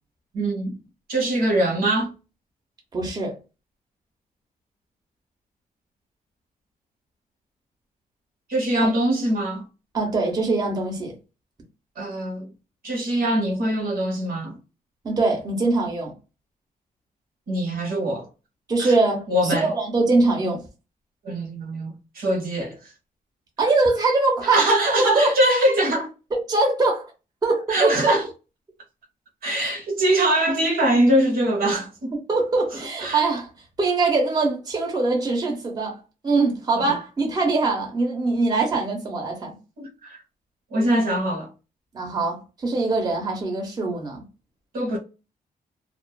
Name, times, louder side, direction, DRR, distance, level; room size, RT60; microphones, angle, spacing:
voice 1, 0.3-0.8 1.1-2.1 8.5-9.6 12.0-12.5 12.8-14.6 17.5-18.3 18.8-18.9 19.3-19.7 21.2-22.8 24.4-26.1 27.7-28.3 29.4-32.2 33.0-33.2 36.8-37.0 39.8-40.2 40.7-41.5 44.7-45.0, right 1 dB, 75° right, 1.0 m, -22 dB
voice 2, 2.9-3.4 9.9-11.1 15.0-16.1 18.7-20.6 23.6-24.7 25.1-25.4 26.3-27.1 27.4-28.2 32.3-33.5 33.8-39.6 41.9-44.2, right 3 dB, 25° right, 0.7 m, -22 dB
2.4 x 2.3 x 2.2 m
wide cardioid pair, 145°, 15 cm